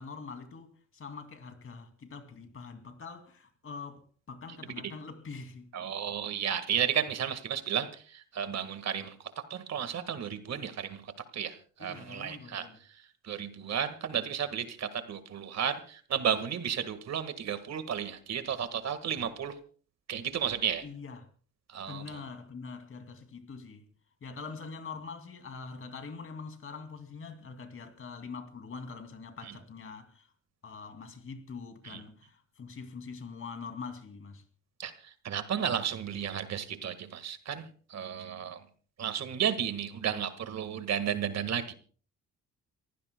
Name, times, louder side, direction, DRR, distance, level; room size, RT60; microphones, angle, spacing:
voice 1, 0.0-5.7 11.8-12.8 20.8-21.3 21.9-23.9 24.2-30.3 30.6-34.4, left 5 dB, 45° left, 2.6 m, -44 dB
voice 2, 5.7-9.1 9.5-12.7 13.2-19.5 20.1-20.8 21.7-22.2 31.8-32.0 34.8-38.6 39.0-41.7, right 8 dB, 60° right, 1.7 m, -33 dB
29.0 x 15.5 x 2.2 m
cardioid pair, 90°, 30 cm